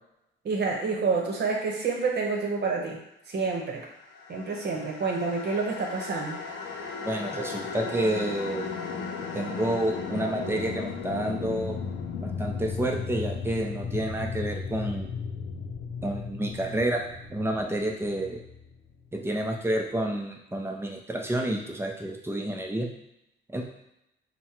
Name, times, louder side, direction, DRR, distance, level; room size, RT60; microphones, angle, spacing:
voice 1, 0.4-3.0 3.3-3.9 4.3-6.4, right 4 dB, 60° right, 0 dB, 0.9 m, -28 dB
sound 1, 4.1-19.3, left 5 dB, 70° left, 0.6 m, -36 dB
voice 2, 7.0-8.7 9.3-11.8 12.2-15.1 16.0-17.0 17.3-18.4 19.1-22.9 23.5-23.6, right 1 dB, 10° right, 1 dB, 0.6 m, -29 dB
3.6 x 2.2 x 4.3 m, 0.84 s
cardioid pair, 90°, 20 cm